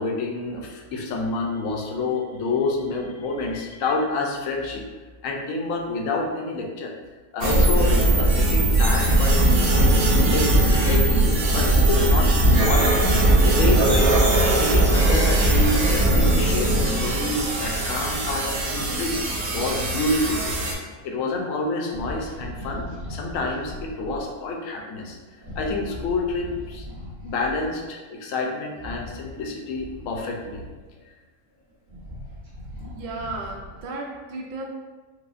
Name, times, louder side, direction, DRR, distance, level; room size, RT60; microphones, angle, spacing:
voice 1, 0.0-4.8 5.2-7.0 7.3-9.9 10.2-13.0 13.4-14.2 14.5-19.2 19.5-20.6 21.0-25.2 25.6-26.8 27.2-30.6, left 3 dB, 70° left, 1 dB, 0.9 m, -28 dB
sound 1, 7.4-20.7, right 1 dB, 90° right, 1.1 m, -19 dB
sound 2, 21.9-24.2 25.4-27.7 28.7-31.0 31.6-34.0, left 1 dB, 40° right, 1.0 m, -39 dB
voice 2, 32.9-34.6, right 2 dB, 70° right, 0 dB, 0.5 m, -34 dB
4.7 x 2.0 x 2.4 m, 1.3 s
omnidirectional pair, 1.5 m